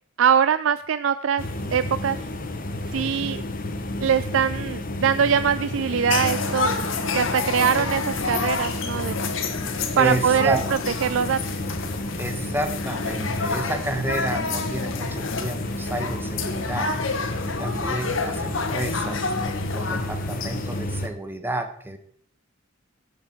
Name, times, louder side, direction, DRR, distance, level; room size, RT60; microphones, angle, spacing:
voice 1, 0.2-1.4 1.7-2.2 2.9-3.4 4.0-6.7 7.1-9.2 10.0-10.6 11.0-11.4, right 7 dB, 75° right, 14 dB, 0.4 m, -22 dB
sound 1, 1.4-21.1, left 1 dB, 45° left, 1.1 m, -31 dB
sound 2, 6.1-20.8, left 4 dB, 85° left, 1.4 m, -29 dB
voice 2, 9.9-10.6 12.2-16.9 17.4-19.3 19.7-22.0, right 1 dB, 10° right, 6 dB, 1.2 m, -30 dB
17.0 x 6.8 x 4.5 m, 0.62 s
head